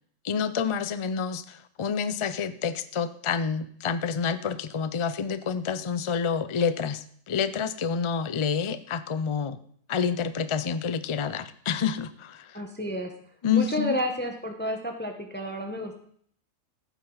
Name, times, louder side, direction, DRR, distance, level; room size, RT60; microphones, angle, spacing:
voice 1, 0.2-9.6 9.9-12.6 13.4-14.0, left 6 dB, 40° left, 13 dB, 0.4 m, -28 dB
voice 2, 12.5-13.1 13.5-16.0, equal, 10° left, 3 dB, 1.1 m, -31 dB
15.5 x 9.2 x 4.0 m, 0.62 s
omnidirectional pair, 1.3 m